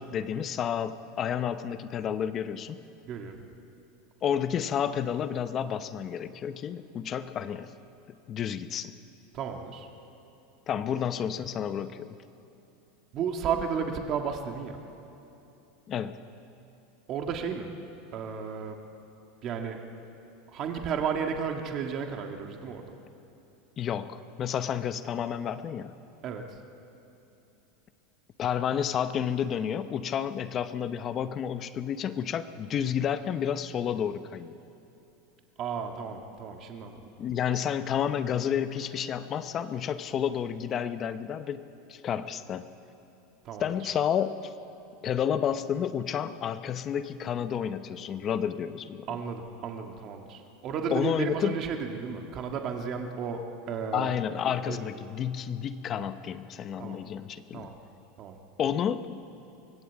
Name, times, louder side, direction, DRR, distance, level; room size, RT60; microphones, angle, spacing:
voice 1, 0.0-2.8 4.2-7.7 8.3-8.9 10.7-12.2 15.9-16.2 23.8-26.0 28.4-34.6 37.2-41.6 41.9-42.7 43.6-44.5 45.0-49.1 50.9-51.5 53.9-57.7 58.6-59.2, left 8 dB, 25° left, 11 dB, 0.7 m, -30 dB
voice 2, 3.0-3.5 9.3-9.9 13.1-14.8 17.1-17.7 18.1-18.8 19.4-19.8 20.5-22.9 26.2-26.6 35.6-37.0 43.4-43.7 49.1-54.1 54.7-54.8 56.8-57.0 57.5-57.7 58.2-58.4, right 6 dB, 35° right, 3 dB, 1.7 m, -33 dB
24.5 x 19.0 x 8.4 m, 3.0 s
supercardioid pair, 165°, 0 cm